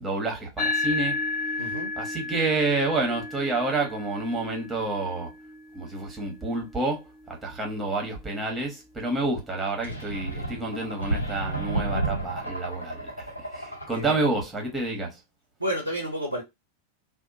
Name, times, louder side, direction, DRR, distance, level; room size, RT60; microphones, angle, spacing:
voice 1, 0.0-1.2 2.0-5.3 5.7-15.2, right 2 dB, 10° right, 1.1 m, -29 dB
sound 1, 0.6-9.3, left 3 dB, 35° left, 0.9 m, -34 dB
voice 2, 1.6-1.9 13.9-14.2 15.6-16.4, equal, 85° right, 0.6 m, -30 dB
sound 2, 9.8-14.4, right 2 dB, 85° left, 0.8 m, -32 dB
2.7 x 2.1 x 2.5 m
figure-of-eight pair, 90°, 0 cm